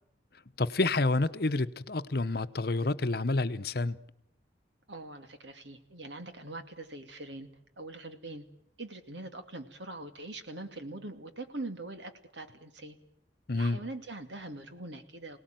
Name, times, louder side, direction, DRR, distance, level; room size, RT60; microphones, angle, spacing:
voice 1, 0.6-4.0 13.5-13.8, left 2 dB, 55° left, 0.9 m, -28 dB
voice 2, 4.9-7.5 7.8-8.5 8.8-13.0 13.5-15.4, right 2 dB, 75° right, 2.5 m, -43 dB
27.0 x 18.5 x 9.2 m
head